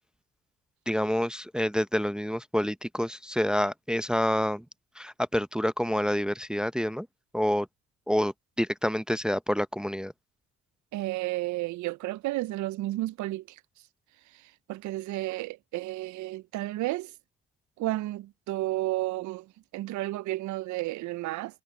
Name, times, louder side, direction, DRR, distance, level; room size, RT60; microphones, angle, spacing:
voice 1, 0.9-4.6 5.0-7.1 7.3-7.7 8.1-10.1, equal, 5° right, 0.6 m, -28 dB
voice 2, 10.9-13.6 14.3-17.1 17.8-21.6, right 17 dB, 70° right, 0.5 m, -32 dB
cardioid pair, 90°, 30 cm